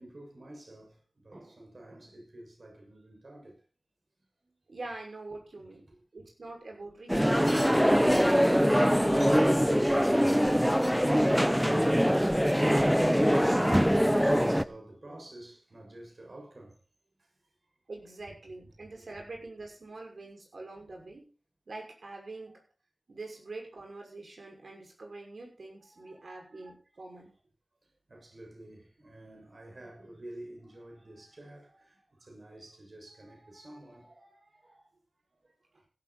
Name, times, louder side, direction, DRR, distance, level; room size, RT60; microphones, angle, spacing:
voice 1, 0.0-3.6 4.4-4.5 5.9-6.0 12.8-16.8 17.2-17.3 18.9-19.1 25.8-26.7 27.8-34.9 35.4-35.5, right 1 dB, 60° right, 6.6 m, -50 dB
voice 2, 4.7-5.9 6.1-8.3 8.7-12.1 17.9-21.2 21.7-22.6 23.1-27.3, right 2 dB, 90° right, 6.1 m, -45 dB
sound 1, 7.1-14.6, equal, ahead, 0.8 m, -23 dB
16.5 x 12.5 x 4.3 m
wide cardioid pair, 70°, 0 cm